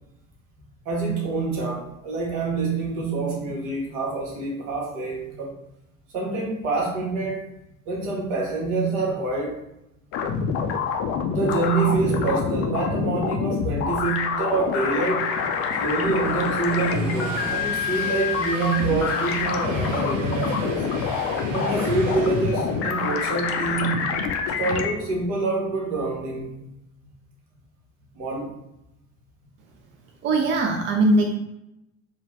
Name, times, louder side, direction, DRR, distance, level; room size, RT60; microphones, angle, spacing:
voice 1, 0.8-5.5 6.1-7.5 7.9-9.6 11.3-15.4 15.8-20.8 21.5-24.0 24.6-26.5 28.1-28.5, right 3 dB, 60° right, -1 dB, 1.0 m, -26 dB
sound 1, 10.1-24.9, left 5 dB, 40° left, 0.4 m, -26 dB
Train, 14.5-24.0, right 1 dB, 85° right, 0.8 m, -37 dB
voice 2, 30.2-31.4, right 2 dB, 30° right, 2 dB, 0.4 m, -20 dB
3.2 x 2.1 x 3.1 m, 0.86 s
figure-of-eight pair, 60°, 39 cm